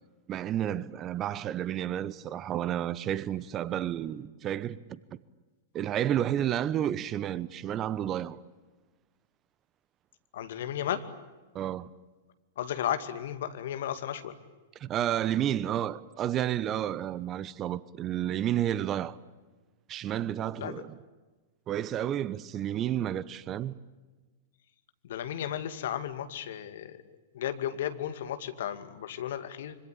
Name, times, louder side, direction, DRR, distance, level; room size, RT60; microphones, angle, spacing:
voice 1, 0.3-5.0 5.7-8.4 11.5-11.9 14.8-19.2 19.9-21.0 21.7-23.7, right 11 dB, 30° right, 1.0 m, -31 dB
voice 2, 10.3-11.0 12.6-14.4 20.6-20.8 25.0-27.0 27.3-29.8, left 10 dB, 60° left, 2.3 m, -34 dB
26.0 x 25.0 x 8.7 m
figure-of-eight pair, 100°, 0 cm